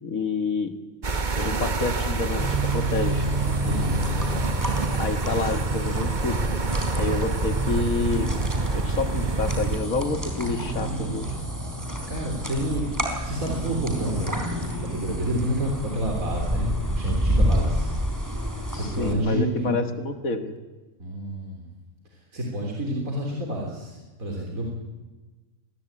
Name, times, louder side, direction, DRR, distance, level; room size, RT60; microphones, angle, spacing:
voice 1, 0.0-0.8 1.4-3.3 4.9-6.4 7.0-8.3 8.7-11.4 18.7-20.5, left 4 dB, 85° left, 8 dB, 2.2 m, -28 dB
sound 1, 1.0-9.8, right 3 dB, 35° right, 1.3 m, -27 dB
sound 2, 2.4-19.1, right 1 dB, 15° right, 4.1 m, -29 dB
voice 2, 3.6-4.3 12.1-13.0 13.2-17.9 18.7-19.7 21.0-21.7 22.1-24.7, right 1 dB, 90° right, -1 dB, 3.9 m, -29 dB
24.5 x 20.5 x 8.9 m, 1.2 s
omnidirectional pair, 1.4 m